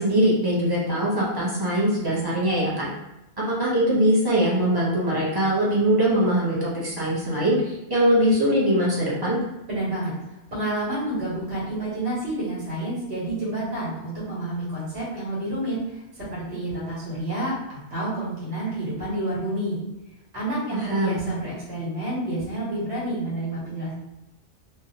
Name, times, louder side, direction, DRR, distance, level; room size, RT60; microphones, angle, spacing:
voice 1, 0.0-2.9 3.4-9.4 20.7-21.2, right 1 dB, 25° right, -7 dB, 0.6 m, -22 dB
voice 2, 9.7-10.1 10.5-19.8 20.3-23.9, right 1 dB, 70° right, -7 dB, 1.4 m, -29 dB
2.7 x 2.1 x 2.8 m, 0.95 s
omnidirectional pair, 1.1 m